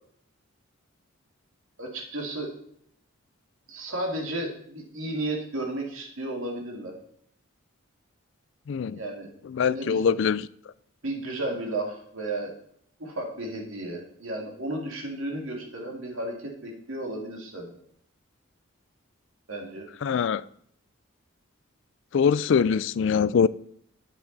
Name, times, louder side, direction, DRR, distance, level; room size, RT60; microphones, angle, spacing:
voice 1, 1.8-2.5 3.7-6.9 8.9-9.3 9.7-10.1 11.0-12.5 13.0-17.7 19.5-19.9, right 1 dB, 75° right, 2.5 m, -33 dB
voice 2, 8.7-9.0 9.5-10.5 20.0-20.4 22.1-23.5, left 6 dB, 60° left, 0.3 m, -23 dB
8.8 x 8.0 x 4.1 m
head